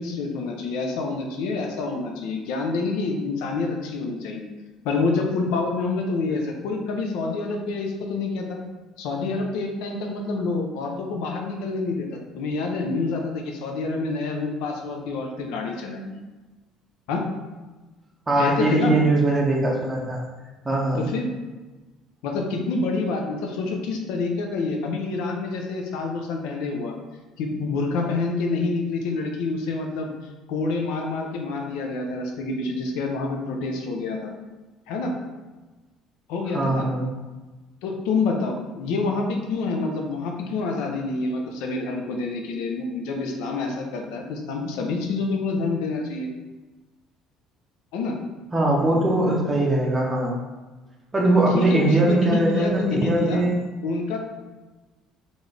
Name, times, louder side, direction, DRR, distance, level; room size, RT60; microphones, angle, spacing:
voice 1, 0.0-4.4 4.8-8.6 9.0-16.1 17.1-17.2 18.4-18.9 21.0-21.2 22.2-26.9 27.4-30.1 30.5-34.3 34.9-35.1 36.3-36.9 37.8-46.3 47.9-48.2 51.5-53.4 53.8-54.2, left 3 dB, 85° left, 2 dB, 0.7 m, -27 dB
voice 2, 18.3-20.2 20.6-21.0 36.5-37.1 48.5-50.3 51.1-53.6, right 2 dB, 10° right, -2 dB, 0.6 m, -21 dB
4.3 x 3.2 x 3.3 m, 1.2 s
cardioid pair, 180°, 0 cm